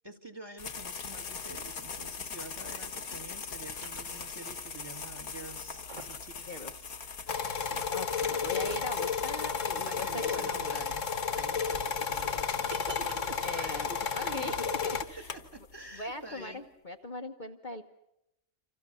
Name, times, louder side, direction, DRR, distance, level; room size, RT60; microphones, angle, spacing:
voice 1, 0.0-6.6 7.0-7.3 7.6-7.9 8.2-8.8 9.8-14.8 15.2-16.6, right 2 dB, 15° right, 7 dB, 2.2 m, -48 dB
sound 1, 0.6-16.0, left 5 dB, 85° left, 2.0 m, -43 dB
sound 2, 1.3-2.9 3.4-4.6 4.9-5.0 5.5-6.3 6.6-6.7 7.9-9.0 10.9-15.0, right 2 dB, 35° right, 2.0 m, -49 dB
voice 2, 6.5-6.9 7.9-10.5 13.4-15.3 15.9-17.8, left 2 dB, 35° left, 4 dB, 1.2 m, -40 dB
sound 3, 7.3-15.0, left 6 dB, 65° left, 1.7 m, -32 dB
28.5 x 26.5 x 6.9 m, 0.85 s
omnidirectional pair, 1.5 m